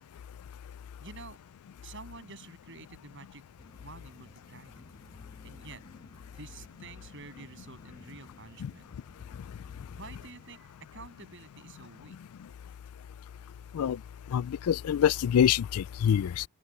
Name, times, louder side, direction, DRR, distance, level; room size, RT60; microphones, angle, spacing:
voice 1, 1.0-1.4 1.8-3.4 3.8-4.8 5.4-5.8 6.3-8.9 9.9-12.2, right 3 dB, 55° right, 8.0 m, -49 dB
sound 1, 3.6-10.6, equal, 20° left, 5.6 m, -56 dB
voice 2, 14.3-16.4, left 9 dB, 85° left, 0.3 m, -25 dB
head